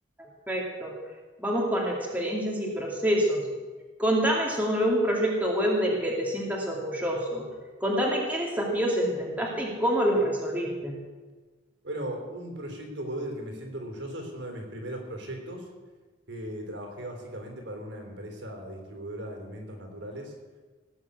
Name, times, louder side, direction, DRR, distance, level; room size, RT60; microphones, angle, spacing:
voice 1, 0.2-0.9 1.4-3.5 4.0-7.5 7.8-11.0, equal, 10° right, -3 dB, 2.4 m, -27 dB
voice 2, 11.8-15.7 16.3-20.3, right 1 dB, 65° right, 3 dB, 3.4 m, -37 dB
18.0 x 7.3 x 8.2 m, 1.3 s
head